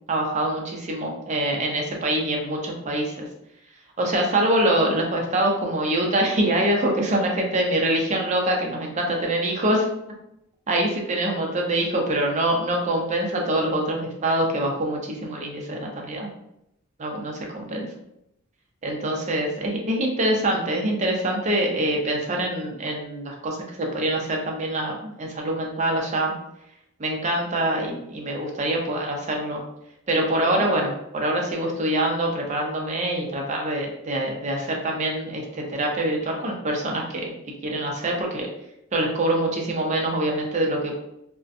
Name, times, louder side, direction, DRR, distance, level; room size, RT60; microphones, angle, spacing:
voice 1, 0.1-3.3 4.0-9.9 10.7-16.3 17.0-17.9 18.8-26.3 27.0-29.6 30.1-37.3 37.6-38.5 38.9-41.0, right 1 dB, 35° right, 1 dB, 0.5 m, -25 dB
2.5 x 2.1 x 2.5 m, 0.81 s
head